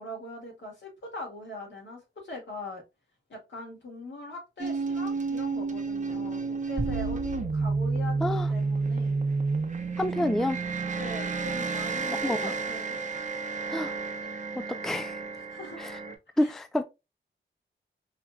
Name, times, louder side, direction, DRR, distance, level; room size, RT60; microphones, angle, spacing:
voice 1, 0.0-2.8 3.3-9.2 10.1-10.5 11.0-13.0 15.4-15.8 16.3-16.5, left 2 dB, 65° left, 2.4 m, -41 dB
sound 1, 4.6-16.2, right 4 dB, 40° right, 0.8 m, -31 dB
sound 2, 6.8-9.3, right 3 dB, 60° right, 1.2 m, -37 dB
voice 2, 8.2-8.5 10.0-10.6 12.2-12.5 13.7-13.9 14.8-15.2 15.8-16.0 16.4-16.8, left 1 dB, ahead, 0.3 m, -28 dB
4.8 x 3.1 x 2.3 m
wide cardioid pair, 100°, 20 cm